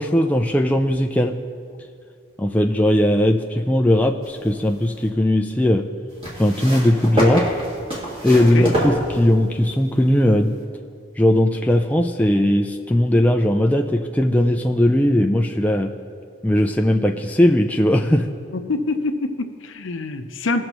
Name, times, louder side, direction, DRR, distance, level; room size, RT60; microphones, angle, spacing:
voice 1, 0.0-1.4 2.4-5.9 6.4-7.5 8.2-10.6 11.2-15.9 16.4-18.3, left 1 dB, 5° left, 3 dB, 0.3 m, -18 dB
sound 1, 4.2-5.1 6.2-9.7 10.6-10.7, right 1 dB, 30° right, 2.2 m, -26 dB
voice 2, 18.5-20.6, left 3 dB, 75° left, 8 dB, 0.7 m, -25 dB
19.0 x 6.4 x 3.0 m, 2.2 s
head